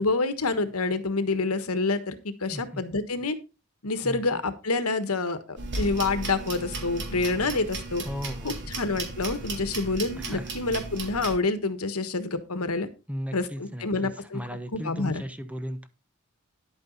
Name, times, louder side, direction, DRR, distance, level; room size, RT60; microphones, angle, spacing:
voice 1, 0.0-3.4 3.8-8.0 8.4-12.9 13.3-14.4 14.7-15.2, left 3 dB, 75° left, 11 dB, 1.4 m, -27 dB
voice 2, 2.5-2.8 4.0-4.2 8.1-8.7 10.2-10.5 13.1-15.9, equal, 5° right, 10 dB, 1.0 m, -36 dB
sound 1, 5.6-11.4, right 3 dB, 55° right, 3.4 m, -35 dB
11.0 x 8.9 x 4.0 m, 0.29 s
head